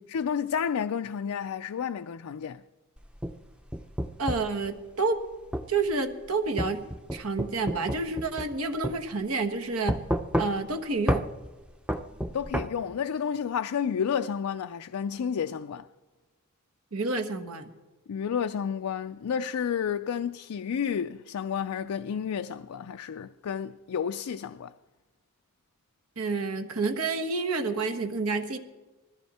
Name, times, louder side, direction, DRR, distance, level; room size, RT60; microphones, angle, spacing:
voice 1, 0.1-2.6 12.3-15.9 18.1-24.7, left 7 dB, 85° left, 0.4 m, -31 dB
sound 1, 3.0-4.5 5.5-5.7 6.6-8.6 8.8-9.0 9.9-10.7 11.1-11.3 11.9-12.7, equal, 5° right, 0.6 m, -29 dB
voice 2, 4.2-5.2 5.7-6.8 7.1-10.0 10.4-11.3 16.9-17.7 26.2-28.6, right 3 dB, 80° right, 1.3 m, -29 dB
20.5 x 14.0 x 4.2 m
head